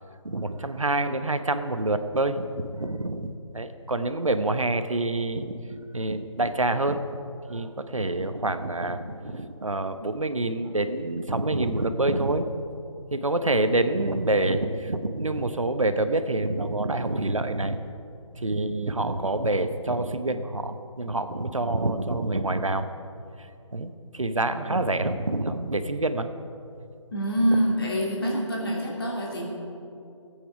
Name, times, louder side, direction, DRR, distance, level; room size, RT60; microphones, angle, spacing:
voice 1, 0.2-5.6 5.9-7.0 7.5-12.5 13.1-17.8 18.4-22.9 23.7-26.3, right 2 dB, 75° right, 9 dB, 1.0 m, -27 dB
voice 2, 27.1-29.5, equal, 45° left, -3 dB, 2.9 m, -25 dB
17.5 x 8.6 x 4.9 m, 2.7 s
figure-of-eight pair, 155°, 17 cm